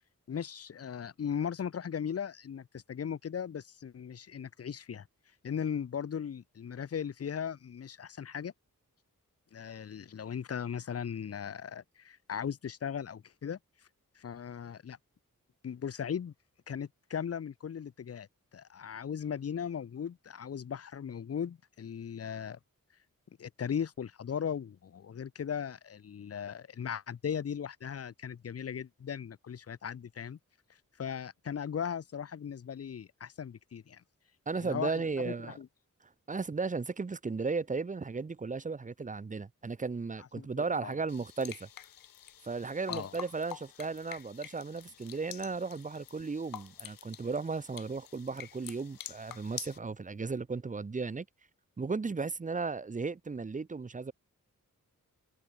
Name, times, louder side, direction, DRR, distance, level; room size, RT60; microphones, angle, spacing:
voice 1, 0.3-5.1 5.4-8.5 9.5-13.6 14.2-15.0 15.6-16.3 16.7-18.3 18.5-22.6 23.4-30.4 31.0-34.0 34.6-34.9 35.2-35.7 40.4-40.9 42.9-43.1, left 8 dB, 45° left, 0.6 m, -38 dB
voice 2, 34.5-35.6 36.3-41.7 42.4-51.3 51.8-54.1, right 4 dB, 25° right, 0.5 m, -35 dB
sound 1, 41.1-49.8, left 10 dB, 90° left, 0.6 m, -47 dB
cardioid pair, 45°, 33 cm